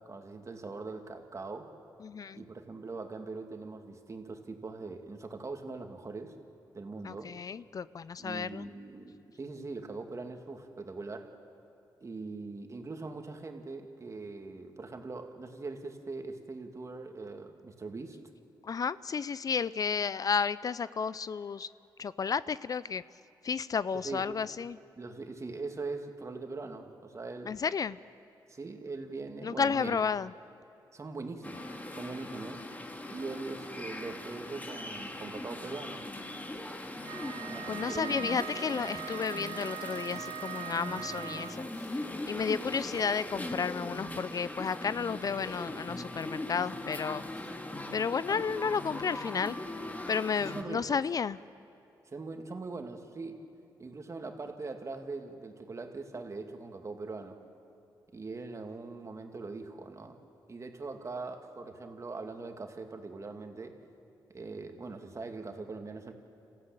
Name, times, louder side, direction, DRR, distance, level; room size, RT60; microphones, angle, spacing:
voice 1, 0.1-1.7 2.3-6.4 6.7-7.3 8.2-11.3 12.0-18.2 23.9-24.3 25.0-27.5 28.5-30.0 30.9-32.6 33.1-36.1 37.5-38.1 48.3-48.6 50.4-51.0 52.1-53.4 53.8-57.4 58.1-60.2 60.5-63.8 64.3-66.1, right 3 dB, 40° right, 5 dB, 2.4 m, -41 dB
voice 2, 2.0-2.4 7.0-8.7 18.6-21.7 22.0-23.0 23.4-24.8 27.5-28.0 29.4-30.3 37.7-41.6 41.9-42.0 42.3-47.2 47.9-49.6 50.1-51.4, left 6 dB, 50° left, 18 dB, 0.5 m, -32 dB
sound 1, 31.4-50.6, left 1 dB, 20° left, 2.2 m, -40 dB
Wind instrument woodwind instrument, 37.0-41.7, right 11 dB, 90° right, 0.6 m, -41 dB
27.0 x 15.0 x 9.0 m, 2.8 s
cardioid pair, 65°, 8 cm